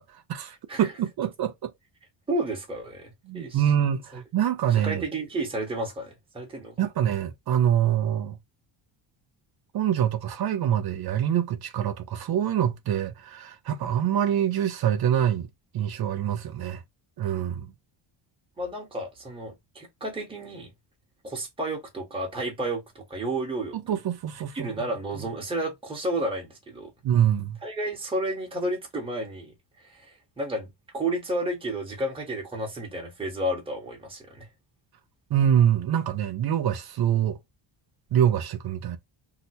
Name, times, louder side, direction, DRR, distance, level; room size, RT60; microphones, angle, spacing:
voice 1, 0.0-1.7 3.3-5.0 6.8-8.4 9.7-15.5 15.7-16.8 17.2-17.7 23.7-24.9 25.2-25.3 27.0-27.6 35.3-37.4 38.1-39.0, right 10 dB, 50° right, 0.6 m, -25 dB
voice 2, 2.3-3.6 4.8-6.8 18.6-20.7 21.2-23.8 24.5-26.9 27.6-29.5 29.8-34.5, right 1 dB, 10° right, 1.1 m, -31 dB
2.9 x 2.0 x 4.1 m
cardioid pair, 150°, 48 cm